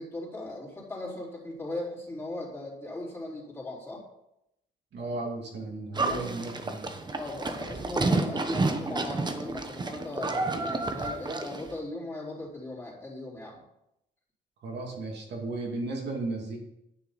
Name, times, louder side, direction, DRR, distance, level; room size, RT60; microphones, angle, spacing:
voice 1, 0.0-4.0 6.0-6.5 7.2-13.6, left 2 dB, 10° left, -6 dB, 3.9 m, -38 dB
voice 2, 4.9-6.9 14.6-16.6, right 2 dB, 65° right, -1 dB, 2.5 m, -35 dB
Livestock farm animals working animals, 5.9-11.7, right 3 dB, 20° right, 1.0 m, -30 dB
10.0 x 9.5 x 4.2 m, 0.83 s
cardioid pair, 145°, 19 cm